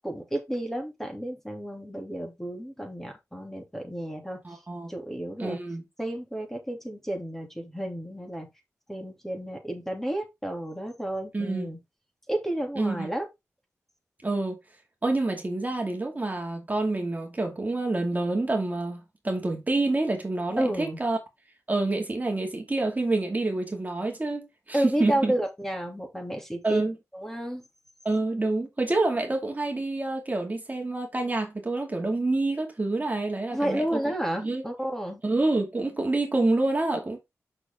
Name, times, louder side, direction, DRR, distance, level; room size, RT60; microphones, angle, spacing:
voice 1, 0.0-4.4 4.9-5.6 6.0-8.5 8.9-11.8 12.3-13.3 20.6-21.0 24.7-26.8 27.1-27.6 33.5-35.2, right 1 dB, 5° left, 2.9 m, -31 dB
voice 2, 4.4-4.9 5.4-5.8 11.3-11.7 12.8-13.1 14.2-14.6 15.0-21.2 21.7-25.3 26.6-26.9 28.0-34.1 34.4-34.6 35.2-37.2, right 2 dB, 30° right, 2.4 m, -27 dB
6.5 x 6.0 x 3.7 m
cardioid pair, 55°, 6 cm